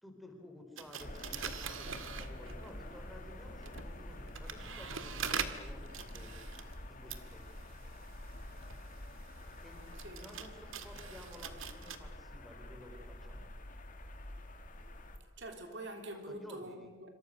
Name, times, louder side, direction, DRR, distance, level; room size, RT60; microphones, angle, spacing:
voice 1, 0.0-6.4 6.9-7.5 9.6-13.5 16.3-16.9, left 1 dB, ahead, 4.2 m, -53 dB
sound 1, 0.8-2.8 3.5-12.0, right 7 dB, 80° right, 1.9 m, -44 dB
sound 2, 1.0-15.2, left 1 dB, 40° left, 2.4 m, -47 dB
voice 2, 15.4-17.1, right 1 dB, 60° right, 3.3 m, -45 dB
27.0 x 26.5 x 6.6 m
head